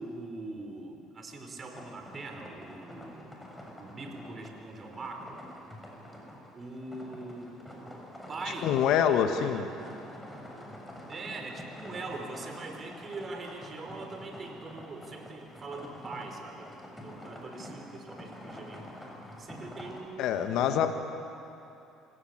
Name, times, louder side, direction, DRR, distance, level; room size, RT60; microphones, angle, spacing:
voice 1, 0.0-3.3 3.8-5.4 6.5-8.0 8.3-8.8 9.5-9.9 11.1-16.7 17.0-18.8 19.4-20.8, right 3 dB, 35° right, 3 dB, 4.7 m, -42 dB
sound 1, 1.7-20.0, equal, 10° left, 7.2 m, -47 dB
voice 2, 8.6-9.7 20.2-20.9, left 9 dB, 65° left, 7 dB, 1.7 m, -25 dB
28.0 x 17.0 x 9.0 m, 2.8 s
hypercardioid pair, 60°, 0 cm